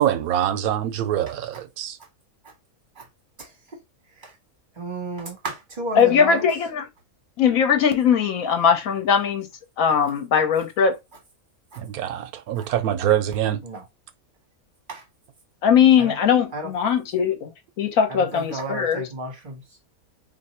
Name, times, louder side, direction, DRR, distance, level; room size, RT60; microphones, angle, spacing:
voice 1, 0.0-2.0 11.8-13.6, right 11 dB, 90° right, 1.1 m, -24 dB
voice 2, 4.8-6.5 11.7-11.8 12.6-12.7 13.6-13.8 14.9-15.0 16.0-16.1 16.5-16.7 18.1-19.6, right 2 dB, 35° right, 1.5 m, -33 dB
voice 3, 5.9-6.9 7.4-9.5 9.8-11.0 15.6-19.0, left 7 dB, 75° left, 1.3 m, -20 dB
2.9 x 2.7 x 4.2 m
omnidirectional pair, 1.5 m